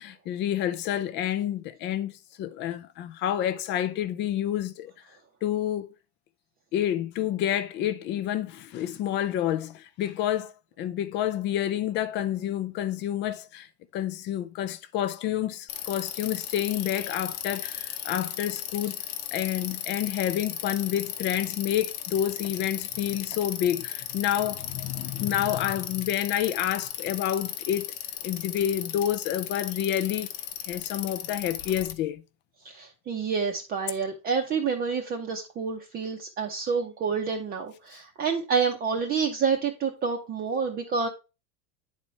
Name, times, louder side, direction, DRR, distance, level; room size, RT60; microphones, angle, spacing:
voice 1, 0.0-4.9 5.4-5.9 6.7-13.7 13.9-19.0 19.3-27.9 28.2-30.3 30.7-32.2, left 11 dB, 35° left, 0.4 m, -29 dB
Bicycle, 15.7-31.9, left 11 dB, 70° left, 0.9 m, -36 dB
voice 2, 32.6-41.1, right 5 dB, 25° right, 0.7 m, -28 dB
9.6 x 4.2 x 3.1 m
cardioid pair, 160°, 35 cm